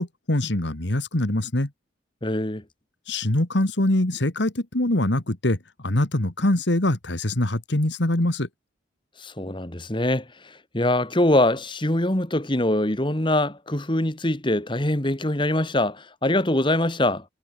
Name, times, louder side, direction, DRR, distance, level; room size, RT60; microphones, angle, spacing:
voice 1, 0.0-1.7 3.1-5.6 5.8-8.5, left 1 dB, 70° left, 2.1 m, -23 dB
voice 2, 2.2-2.6 9.2-17.3, left 1 dB, 25° left, 1.9 m, -23 dB
head